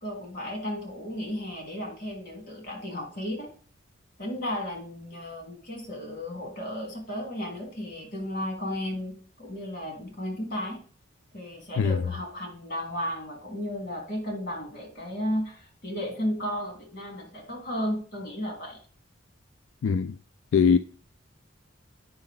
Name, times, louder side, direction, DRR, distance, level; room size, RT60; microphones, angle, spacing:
voice 1, 0.0-3.5 4.2-10.8 11.3-18.8, left 1 dB, 50° left, 3.3 m, -34 dB
voice 2, 19.8-20.1 20.5-20.8, left 6 dB, 80° left, 0.3 m, -21 dB
8.7 x 5.7 x 3.8 m
head